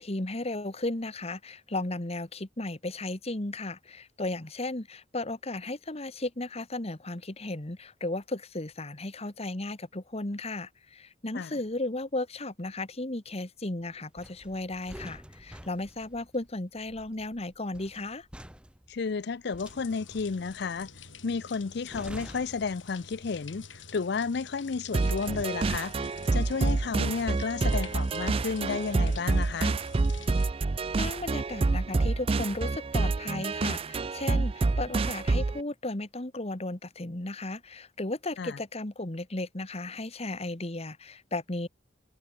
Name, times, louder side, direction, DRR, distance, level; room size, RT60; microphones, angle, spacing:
voice 1, 0.0-18.2 31.0-41.7, left 2 dB, 35° left, 1.6 m, -35 dB
sound 1, 14.2-23.5 23.8-24.1, equal, 5° right, 1.9 m, -49 dB
voice 2, 18.9-20.9 21.2-23.6 23.9-25.9 26.3-29.8 38.4-38.6, left 5 dB, 60° left, 0.5 m, -32 dB
sound 2, 19.6-30.5, left 5 dB, 90° left, 7.3 m, -49 dB
sound 3, 24.9-35.6, right 3 dB, 30° right, 0.4 m, -27 dB
head